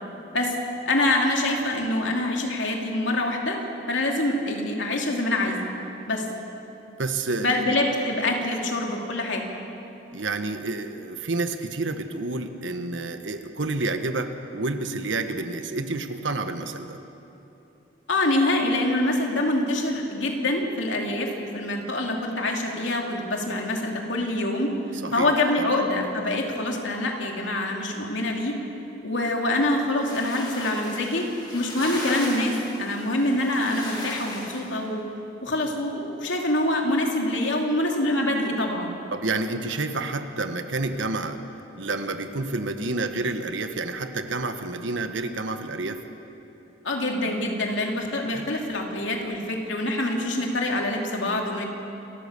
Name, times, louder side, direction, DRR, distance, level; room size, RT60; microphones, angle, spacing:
voice 1, 0.9-3.6 3.9-5.6 6.1-6.3 7.4-9.4 18.1-24.7 25.1-28.6 29.0-35.0 35.4-38.9 46.8-51.7, left 1 dB, 80° left, 1 dB, 2.8 m, -25 dB
voice 2, 7.0-7.8 10.1-17.0 25.0-25.7 39.1-41.4 41.7-46.0 48.3-48.4, right 3 dB, 80° right, 8 dB, 1.3 m, -29 dB
sound 1, 30.1-34.8, left 1 dB, 20° left, 3.0 m, -37 dB
28.0 x 14.0 x 6.8 m, 3.0 s
head